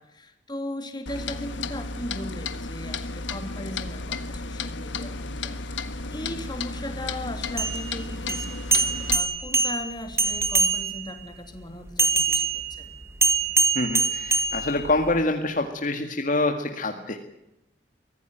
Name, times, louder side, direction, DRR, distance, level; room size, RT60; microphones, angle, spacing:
voice 1, 0.0-12.9, left 1 dB, 25° left, 5 dB, 3.2 m, -38 dB
Clock, 1.1-9.2, left 3 dB, 80° left, 1.6 m, -33 dB
sound 1, 7.5-11.2 12.0-15.2, right 4 dB, 15° right, 1.6 m, -24 dB
voice 2, 13.7-17.2, left 2 dB, 45° left, 4 dB, 2.0 m, -26 dB
24.0 x 15.5 x 9.2 m, 0.87 s
head